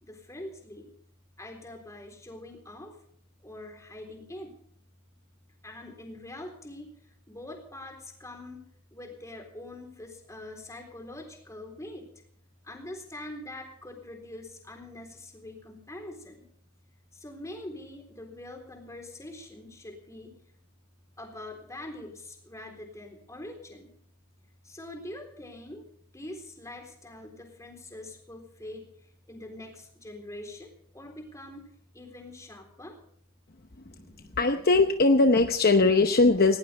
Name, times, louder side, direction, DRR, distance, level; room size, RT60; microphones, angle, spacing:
voice 1, 0.0-0.9 1.4-2.9 3.4-4.5 5.6-6.9 7.3-8.6 8.9-12.1 12.6-16.4 17.2-20.3 21.2-23.9 24.7-25.8 26.1-28.8 29.3-31.7 31.9-33.0 33.9-34.4, left 1 dB, 15° left, 3 dB, 3.8 m, -43 dB
voice 2, 34.4-36.6, left 3 dB, 45° left, 6 dB, 0.9 m, -20 dB
19.0 x 18.0 x 3.4 m, 0.64 s
head